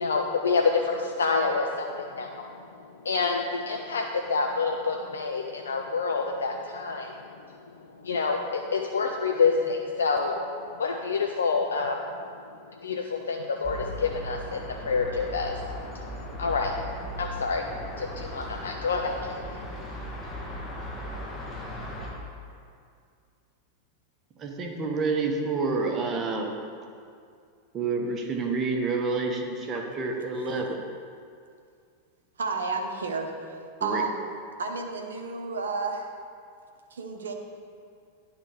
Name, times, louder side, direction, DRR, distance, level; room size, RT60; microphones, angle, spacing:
voice 1, 0.0-10.4 10.8-12.4 12.8-19.9, left 4 dB, 70° left, 2 dB, 0.4 m, -28 dB
sound 1, 13.6-22.1, equal, 15° left, 1.3 m, -38 dB
voice 2, 24.4-26.6 27.7-30.8 33.8-34.0, right 3 dB, 25° right, 2 dB, 0.9 m, -28 dB
voice 3, 32.4-33.3 33.8-34.2 34.6-36.1 36.9-37.3, right 4 dB, 70° right, 4 dB, 0.7 m, -31 dB
10.0 x 3.7 x 4.7 m, 2.3 s
figure-of-eight pair, 90°, 0 cm